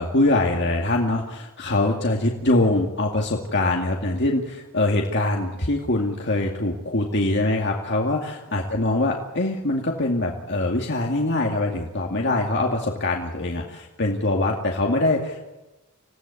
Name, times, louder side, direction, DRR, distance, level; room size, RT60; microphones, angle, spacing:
voice 1, 0.0-15.4, left 2 dB, 50° left, 0 dB, 2.3 m, -23 dB
26.5 x 17.0 x 8.4 m, 1.1 s
head